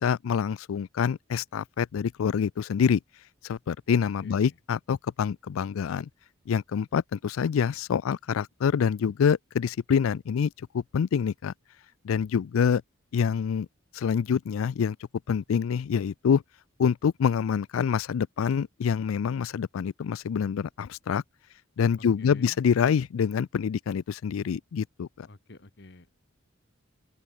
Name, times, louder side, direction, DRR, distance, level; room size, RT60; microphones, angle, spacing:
voice 1, 0.0-3.0 3.4-6.1 6.5-11.5 12.0-12.8 13.1-13.7 13.9-15.0 15.3-16.4 16.8-21.2 21.8-25.3, left 7 dB, 90° left, 0.4 m, -26 dB
voice 2, 4.2-4.6 22.0-22.6 25.2-26.1, left 2 dB, 60° left, 1.5 m, -48 dB
open air
head